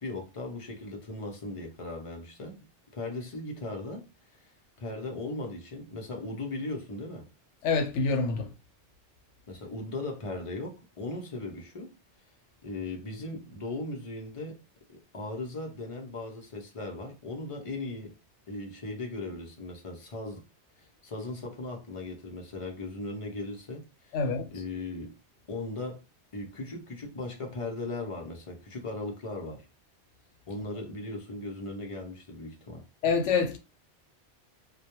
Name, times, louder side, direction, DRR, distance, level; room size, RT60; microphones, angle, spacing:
voice 1, 0.0-2.6 2.9-4.0 4.3-7.2 9.5-11.9 12.6-14.6 14.9-18.1 18.5-20.5 20.8-24.2 24.5-25.1 25.5-26.0 26.3-29.6 30.5-32.8, left 2 dB, 40° left, 0.5 m, -38 dB
voice 2, 7.6-8.5 24.1-24.5 33.0-33.6, left 4 dB, 90° left, 0.9 m, -26 dB
2.2 x 2.2 x 2.9 m
omnidirectional pair, 1.2 m